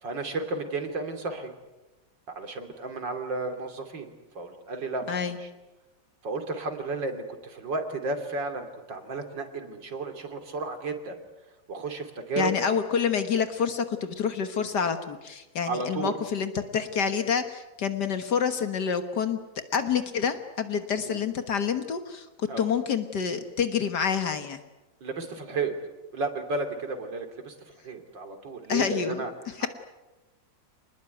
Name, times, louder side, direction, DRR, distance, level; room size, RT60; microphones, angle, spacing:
voice 1, 0.0-1.5 2.4-5.5 6.2-11.2 11.7-12.5 15.7-16.2 21.0-21.2 22.5-22.7 25.0-25.7 26.1-27.5 27.8-29.3 29.6-29.7, right 3 dB, 80° right, 6 dB, 3.5 m, -33 dB
voice 2, 5.1-5.4 12.4-19.4 19.7-24.6 28.7-29.2 29.6-29.7, left 7 dB, 65° left, 9 dB, 2.0 m, -28 dB
27.5 x 20.5 x 9.3 m, 1.1 s
omnidirectional pair, 2.0 m